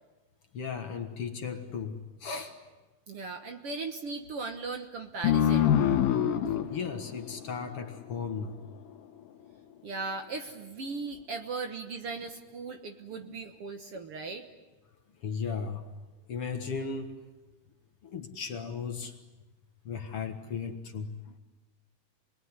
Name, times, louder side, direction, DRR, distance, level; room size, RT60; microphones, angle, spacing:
voice 1, 0.5-2.5 6.7-8.6 13.1-13.4 15.2-15.9 16.3-17.1 18.0-19.2 19.9-21.3, left 5 dB, 50° left, 6 dB, 2.1 m, -36 dB
voice 2, 3.1-5.7 9.8-14.4, right 4 dB, 55° right, 6 dB, 1.9 m, -38 dB
sound 1, 5.2-8.4, left 9 dB, 85° left, 2.8 m, -26 dB
28.0 x 21.5 x 9.6 m, 1.2 s
omnidirectional pair, 3.6 m